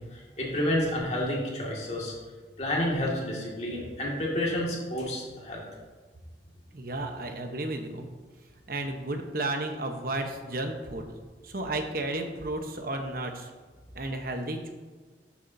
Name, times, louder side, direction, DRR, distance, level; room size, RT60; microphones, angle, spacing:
voice 1, 0.1-2.1 2.6-5.6, left 1 dB, 40° left, -3 dB, 2.1 m, -30 dB
voice 2, 6.7-8.1 8.7-11.2 11.4-13.5 13.9-14.7, right 2 dB, 55° right, 4 dB, 1.0 m, -33 dB
13.0 x 7.2 x 2.7 m, 1.4 s
head